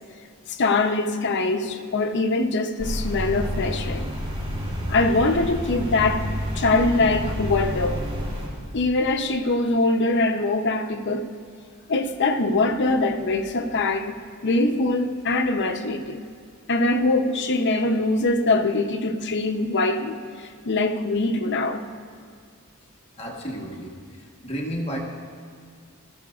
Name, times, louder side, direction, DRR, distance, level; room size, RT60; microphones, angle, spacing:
voice 1, 0.5-4.1 4.9-6.2 6.5-8.0 8.7-11.3 11.9-14.1 14.4-16.2 16.7-21.8, left 2 dB, 50° left, 6 dB, 0.7 m, -23 dB
sound 1, 2.8-8.5, equal, 25° right, 3.1 m, -29 dB
voice 2, 23.2-25.0, equal, 25° left, -1 dB, 1.3 m, -33 dB
18.5 x 13.5 x 2.4 m, 2.1 s
head